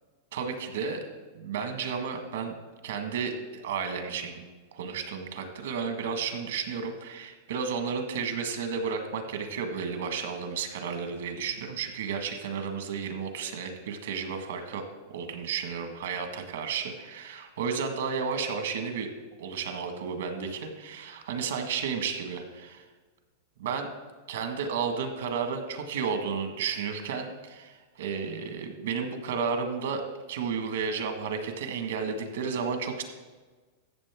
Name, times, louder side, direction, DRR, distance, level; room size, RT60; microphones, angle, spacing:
voice 1, 0.3-1.0 1.3-2.5 2.8-4.4 4.7-14.8 15.1-19.1 19.4-22.8 23.6-23.9 24.3-30.0 30.3-33.0, right 6 dB, 85° right, 5 dB, 1.7 m, -32 dB
14.0 x 7.5 x 3.7 m, 1.3 s
supercardioid pair, 165°, 0 cm